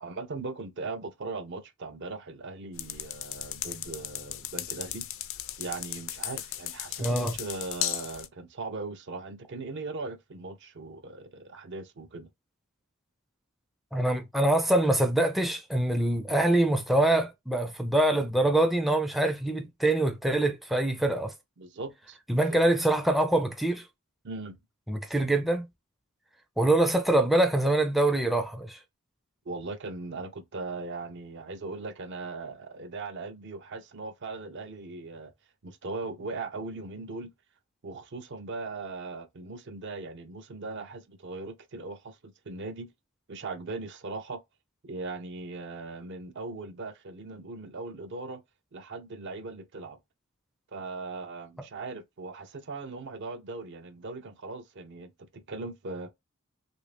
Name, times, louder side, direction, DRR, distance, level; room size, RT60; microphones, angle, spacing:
voice 1, 0.0-5.1 5.6-12.3 21.6-22.6 24.2-24.6 29.5-35.3 35.6-37.3 37.8-42.9 43.3-44.4 44.8-48.4 48.7-50.0 50.7-56.1, right 3 dB, 55° right, 0.6 m, -39 dB
sound 1, 2.7-8.3, left 13 dB, 60° left, 0.4 m, -36 dB
voice 2, 7.0-7.3 13.9-21.3 22.3-23.8 24.9-25.7 26.6-28.8, right 1 dB, ahead, 0.4 m, -24 dB
3.1 x 2.6 x 3.3 m
head